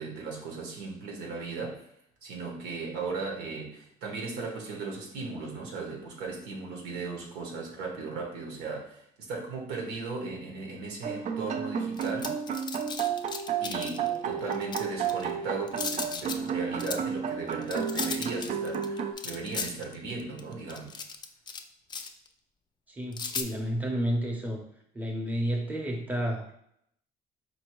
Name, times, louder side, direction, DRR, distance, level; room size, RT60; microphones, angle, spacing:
voice 1, 0.0-1.9 2.2-12.4 13.6-21.0, right 4 dB, 90° right, 0 dB, 1.0 m, -37 dB
sound 1, 11.0-19.1, right 7 dB, 45° right, 0.4 m, -32 dB
sound 2, 12.0-14.1 14.5-15.3 15.7-16.5 16.8-17.0 17.5-21.6 21.9-22.3 23.1-23.4, left 5 dB, 25° left, 0.3 m, -36 dB
voice 2, 22.9-24.6 24.9-26.5, equal, 10° right, 0 dB, 0.7 m, -31 dB
4.3 x 2.7 x 3.0 m, 0.71 s
cardioid pair, 110°, 17 cm